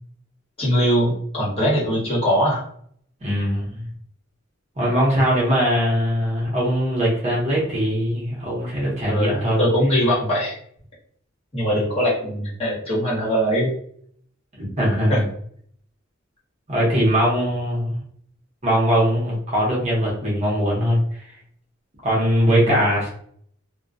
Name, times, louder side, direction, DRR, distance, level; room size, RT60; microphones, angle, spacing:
voice 1, 0.6-2.6 9.1-10.6 11.5-13.7 15.1-15.2 22.5-22.8, equal, 30° left, -7 dB, 1.2 m, -21 dB
voice 2, 3.2-3.9 4.8-9.6 14.6-15.3 16.7-18.0 18.6-21.0 22.0-23.1, equal, 35° right, -5 dB, 0.8 m, -21 dB
2.2 x 2.2 x 2.6 m, 0.63 s
head